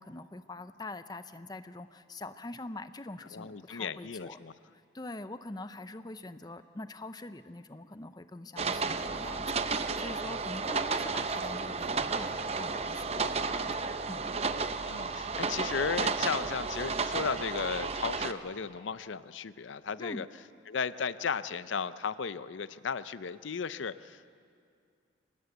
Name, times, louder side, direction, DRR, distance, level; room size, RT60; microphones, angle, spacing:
voice 1, 0.0-4.4 4.9-14.3 20.0-20.2, left 2 dB, 20° left, 11 dB, 0.6 m, -44 dB
voice 2, 3.3-4.5 14.8-20.3 20.7-24.3, left 6 dB, 75° left, 15 dB, 0.5 m, -35 dB
sound 1, 8.6-18.3, right 4 dB, 30° right, 0.7 m, -32 dB
24.0 x 19.5 x 7.9 m, 2.3 s
head